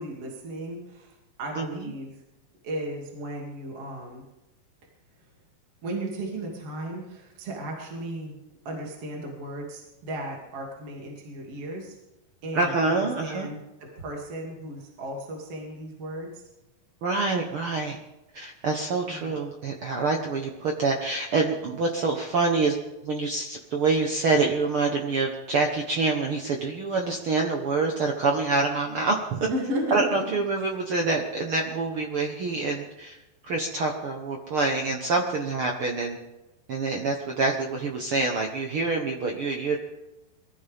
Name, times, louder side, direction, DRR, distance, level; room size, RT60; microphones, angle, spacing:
voice 1, 0.0-2.1 2.6-4.2 5.8-8.4 8.6-12.0 12.4-13.6 14.0-16.4 19.1-19.3 29.5-30.3, right 1 dB, 45° right, -1 dB, 3.3 m, -35 dB
voice 2, 1.6-1.9 12.5-13.5 17.0-18.0 18.3-29.5 29.9-36.2 36.7-39.8, right 3 dB, 80° right, 1 dB, 1.2 m, -26 dB
23.0 x 15.0 x 3.6 m, 0.97 s
omnidirectional pair, 4.3 m